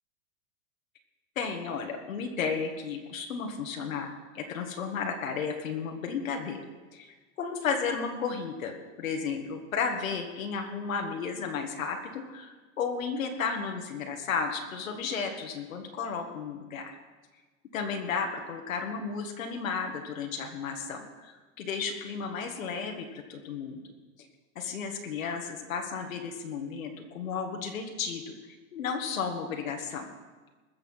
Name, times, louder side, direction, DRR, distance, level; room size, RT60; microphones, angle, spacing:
voice 1, 1.4-6.6 6.9-16.9 17.7-23.8 24.6-30.1, left 5 dB, 75° left, 3 dB, 1.9 m, -33 dB
21.0 x 7.0 x 5.6 m, 1.3 s
supercardioid pair, 180°, 41 cm